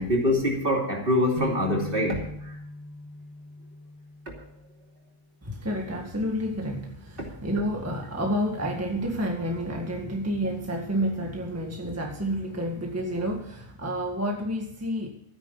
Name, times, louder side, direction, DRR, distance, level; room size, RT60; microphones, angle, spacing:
voice 1, 0.0-2.5, left 1 dB, 40° right, 0 dB, 3.2 m, -25 dB
sound 1, 1.4-5.4, right 1 dB, 80° right, 2.5 m, -41 dB
voice 2, 5.4-15.1, equal, 10° right, 1 dB, 1.8 m, -29 dB
13.0 x 10.0 x 5.5 m, 0.72 s
omnidirectional pair, 1.4 m